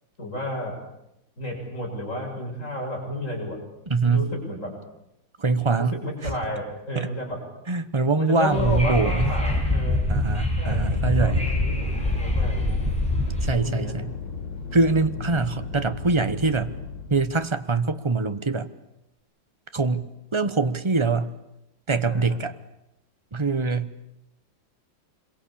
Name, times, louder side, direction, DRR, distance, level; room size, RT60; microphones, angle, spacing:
voice 1, 0.2-0.7 1.4-3.6 4.0-4.7 5.8-7.4 8.1-10.0 10.6-12.7 13.5-13.9 15.2-15.4 22.1-22.4, left 1 dB, 35° left, 0 dB, 7.5 m, -32 dB
voice 2, 3.9-4.3 5.4-6.0 6.2-6.3 6.9-7.1 7.7-9.2 10.1-11.5 13.4-14.1 14.7-16.8 17.1-18.7 19.7-21.3 21.9-22.6 23.3-23.9, right 3 dB, 25° right, 11 dB, 0.7 m, -23 dB
Wind / Subway metro underground, 8.5-13.5, left 1 dB, 5° left, 6.3 m, -24 dB
sound 1, 10.7-17.2, left 4 dB, 65° left, 5.4 m, -36 dB
26.5 x 22.5 x 8.6 m, 0.84 s
omnidirectional pair, 2.2 m